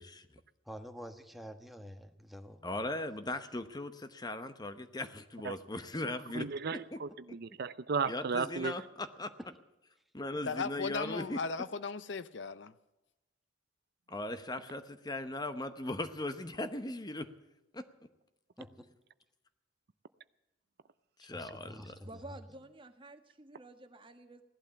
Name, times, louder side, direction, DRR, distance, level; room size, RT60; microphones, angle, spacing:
voice 1, 0.7-2.6 9.4-9.5 18.6-18.9 21.2-22.4, equal, ahead, 1.2 m, -48 dB
voice 2, 2.6-7.0 8.1-9.3 10.1-11.4 14.1-17.3 17.7-17.9 21.2-21.9, left 1 dB, 20° left, 0.9 m, -38 dB
voice 3, 6.3-8.7, right 5 dB, 60° right, 0.5 m, -35 dB
voice 4, 10.4-12.7, left 4 dB, 70° left, 0.7 m, -37 dB
voice 5, 22.0-24.4, right 2 dB, 30° right, 1.5 m, -51 dB
17.0 x 12.0 x 7.0 m
head